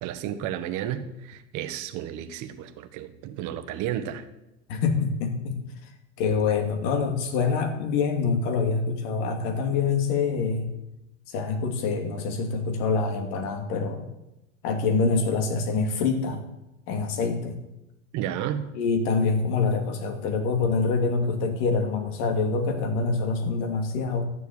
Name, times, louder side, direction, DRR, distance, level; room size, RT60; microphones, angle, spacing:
voice 1, 0.0-4.2 18.1-18.7, right 10 dB, 45° right, 9 dB, 1.5 m, -32 dB
voice 2, 4.7-5.6 6.2-10.7 11.3-14.1 14.6-16.4 16.9-17.5 18.7-24.3, left 4 dB, 55° left, 5 dB, 2.7 m, -25 dB
12.5 x 7.1 x 8.7 m, 0.90 s
hypercardioid pair, 115°, 40 cm